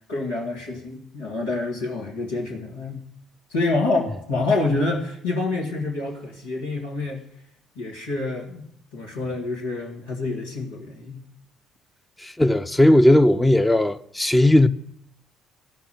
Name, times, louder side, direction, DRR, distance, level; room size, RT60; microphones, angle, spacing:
voice 1, 0.1-3.0 3.5-7.3 7.8-11.2, left 3 dB, 80° left, 2.0 m, -27 dB
voice 2, 12.2-14.7, left 1 dB, 10° left, 0.8 m, -17 dB
15.0 x 5.8 x 9.3 m
figure-of-eight pair, 50°, 0 cm